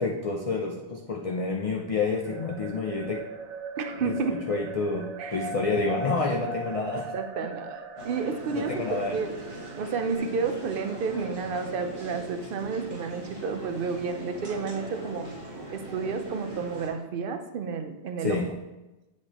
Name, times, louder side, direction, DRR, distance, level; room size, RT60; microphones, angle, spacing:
voice 1, 0.0-3.2 4.0-7.1 8.5-9.2 18.2-18.6, left 3 dB, 50° left, 1 dB, 0.4 m, -29 dB
sound 1, 2.2-10.2, right 2 dB, 85° right, 1.0 m, -39 dB
voice 2, 3.8-4.3 5.2-5.5 6.9-9.3 9.8-15.3 15.7-18.4, right 5 dB, 60° right, 7 dB, 0.7 m, -31 dB
sound 2, 8.0-16.9, right 1 dB, 30° right, 1.4 m, -40 dB
7.8 x 4.4 x 2.9 m, 1.0 s
omnidirectional pair, 1.2 m